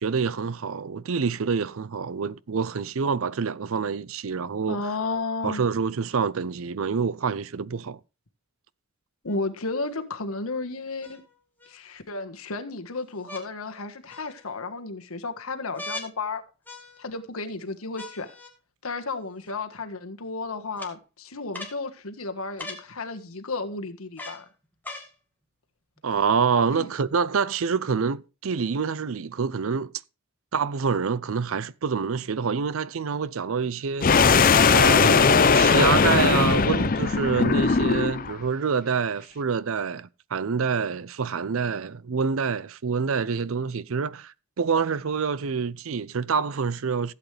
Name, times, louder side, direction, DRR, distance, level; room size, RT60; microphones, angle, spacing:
voice 1, 0.0-4.8 5.4-8.0 26.0-29.9 30.5-34.1 34.7-47.1, right 5 dB, 70° right, 0.5 m, -27 dB
voice 2, 4.7-5.6 9.2-11.2 11.7-16.4 17.0-18.3 18.8-24.4 26.7-26.9, left 3 dB, 75° left, 1.5 m, -33 dB
sound 1, 9.3-9.4 11.0-11.7 13.2-13.5 14.1-14.6 15.8-16.1 16.7-17.2 18.0-18.5 19.5-19.6 20.8-20.9 21.5-21.8 22.6-22.9 24.2-24.4 24.8-25.1 26.0-26.1, left 2 dB, 10° left, 2.1 m, -39 dB
sound 2, 34.0-38.3, left 5 dB, 40° left, 0.6 m, -19 dB
16.0 x 8.3 x 3.3 m
head